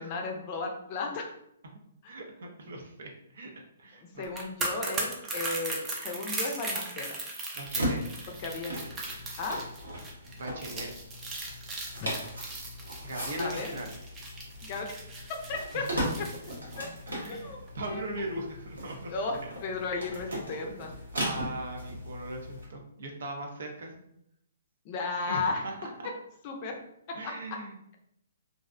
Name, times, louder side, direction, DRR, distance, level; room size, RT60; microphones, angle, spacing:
voice 1, 0.0-1.3 2.0-2.1 4.0-7.2 8.3-8.7 9.4-9.6 12.0-12.1 13.2-13.7 14.6-14.9 15.3-16.3 16.8-16.9 17.3-18.0 19.1-20.9 24.8-25.7 26.4-26.8 27.2-27.3, left 3 dB, 40° left, 2 dB, 0.5 m, -35 dB
voice 2, 2.1-3.5 3.8-4.2 7.5-8.0 10.3-10.9 13.0-13.9 15.7-16.1 17.1-19.1 20.1-20.2 21.1-24.0 25.3-26.1 27.1-27.7, right 1 dB, 70° right, 1 dB, 0.6 m, -39 dB
sound 1, 4.2-17.4 17.7-17.9, right 2 dB, 20° right, 0.5 m, -38 dB
sound 2, 7.6-22.6, equal, 85° right, 1.1 m, -38 dB
2.5 x 2.0 x 2.5 m, 0.75 s
hypercardioid pair, 135°, 0 cm